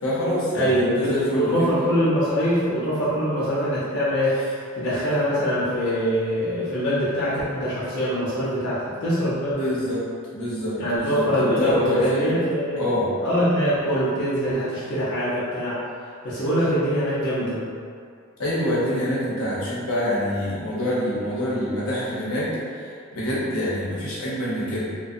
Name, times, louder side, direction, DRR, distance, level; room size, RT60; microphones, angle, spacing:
voice 1, 0.0-1.7 9.5-10.0 10.3-12.3 12.7-13.1 18.4-22.5 22.8-24.9, left 1 dB, 85° left, -8 dB, 0.8 m, -26 dB
voice 2, 0.5-4.4 4.7-9.6 10.8-12.8 13.2-15.8 16.2-17.6, equal, 55° left, -10 dB, 0.6 m, -23 dB
2.5 x 2.2 x 2.5 m, 2.3 s
head